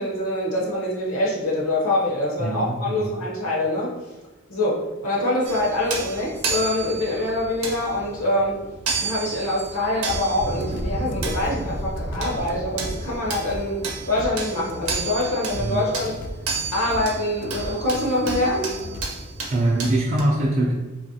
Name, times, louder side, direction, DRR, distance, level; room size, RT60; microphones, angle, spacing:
voice 1, 0.0-3.9 4.5-8.6 8.9-16.2 16.7-18.7, left 1 dB, 75° left, -4 dB, 0.7 m, -25 dB
voice 2, 2.4-3.2 15.6-15.8 19.5-20.7, right 1 dB, 35° right, -3 dB, 0.3 m, -23 dB
sound 1, 5.4-20.2, right 4 dB, 80° right, 0.7 m, -33 dB
sound 2, 10.0-19.1, left 1 dB, 40° left, 0.3 m, -36 dB
sound 3, 10.3-15.0, equal, 50° right, 0.7 m, -32 dB
3.0 x 2.4 x 2.7 m, 1.2 s
head